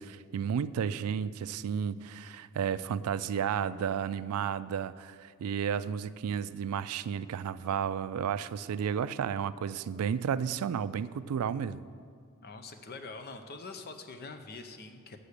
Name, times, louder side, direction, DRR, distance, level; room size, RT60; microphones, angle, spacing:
voice 1, 0.0-11.8, right 7 dB, 70° right, 15 dB, 0.3 m, -32 dB
voice 2, 12.4-15.2, left 3 dB, 45° left, 7 dB, 0.6 m, -44 dB
8.4 x 6.8 x 6.6 m, 2.1 s
head